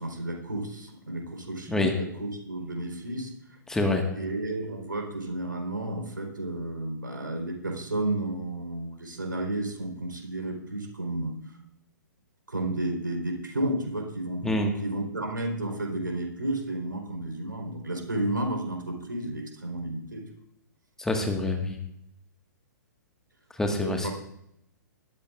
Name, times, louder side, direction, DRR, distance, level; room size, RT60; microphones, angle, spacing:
voice 1, 0.0-3.6 4.1-11.3 12.5-20.2 23.8-24.1, right 1 dB, 80° right, 1 dB, 4.0 m, -32 dB
voice 2, 3.7-4.0 14.4-14.7 21.0-21.8 23.6-24.1, left 2 dB, 5° left, 3 dB, 1.6 m, -26 dB
20.0 x 13.0 x 2.5 m, 0.77 s
figure-of-eight pair, 120°, 11 cm